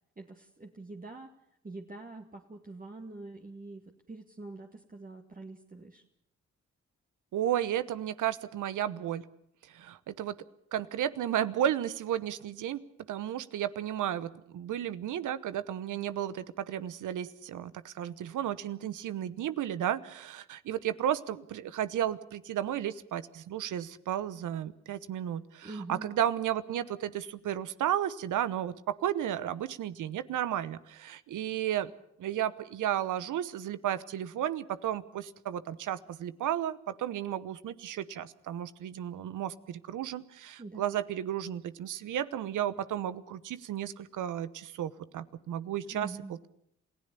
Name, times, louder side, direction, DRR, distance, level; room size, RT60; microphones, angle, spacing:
voice 1, 0.2-1.3 1.6-6.0 25.6-26.2 40.6-41.0 45.8-46.4, right 2 dB, 25° right, 1 dB, 2.1 m, -45 dB
voice 2, 7.3-9.2 9.7-10.4 10.7-12.8 13.1-31.9 32.2-46.1, right 11 dB, 75° right, 15 dB, 1.0 m, -33 dB
28.0 x 16.0 x 6.8 m, 0.76 s
supercardioid pair, 50°, 31 cm